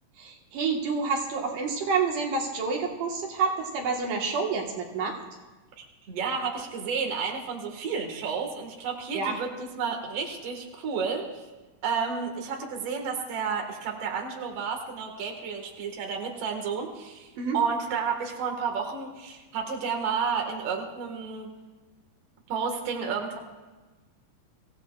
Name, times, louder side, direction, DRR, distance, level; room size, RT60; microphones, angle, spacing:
voice 1, 0.2-5.2 9.1-9.4 17.4-17.6, right 4 dB, 75° right, 0 dB, 3.0 m, -28 dB
voice 2, 5.8-11.5 11.8-21.5 22.5-23.4, right 5 dB, 50° right, 2 dB, 2.5 m, -31 dB
24.0 x 16.0 x 2.4 m, 1.2 s
omnidirectional pair, 3.9 m